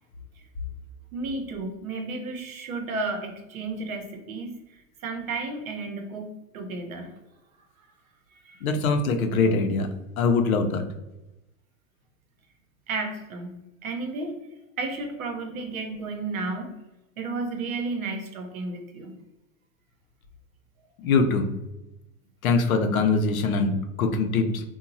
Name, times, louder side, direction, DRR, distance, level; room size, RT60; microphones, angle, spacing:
voice 1, 1.1-4.6 5.0-7.1 8.4-8.6 12.9-14.3 14.8-16.7 17.2-19.1, right 3 dB, 85° right, 4 dB, 0.7 m, -32 dB
voice 2, 8.6-9.9 10.2-10.8 21.0-21.5 22.4-24.6, left 4 dB, 90° left, 5 dB, 0.6 m, -23 dB
2.9 x 2.2 x 2.6 m, 0.95 s
hypercardioid pair, 110°, 41 cm